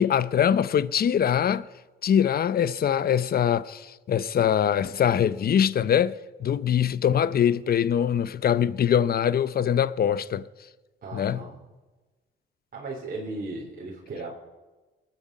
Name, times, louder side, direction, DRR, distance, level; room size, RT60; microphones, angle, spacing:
voice 1, 0.0-1.7 2.0-10.5 11.1-11.4, left 9 dB, 50° left, 0.7 m, -23 dB
voice 2, 11.0-11.6 12.7-14.3, right 2 dB, 45° right, 3.4 m, -36 dB
22.0 x 9.3 x 5.4 m
cardioid pair, 90°, 20 cm